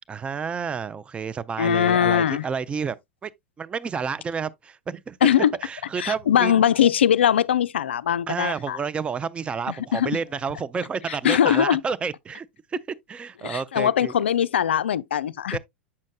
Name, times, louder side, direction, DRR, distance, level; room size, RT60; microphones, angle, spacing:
voice 1, 0.1-3.0 3.2-3.3 3.6-5.2 5.6-6.5 8.3-12.5 13.1-14.1 15.5-15.6, right 6 dB, 15° right, 0.4 m, -30 dB
voice 2, 1.6-2.5 5.2-5.5 6.0-8.8 9.7-10.2 11.1-11.8 13.4-15.6, left 9 dB, 65° left, 0.3 m, -21 dB
8.5 x 6.3 x 2.2 m
figure-of-eight pair, 85°, 6 cm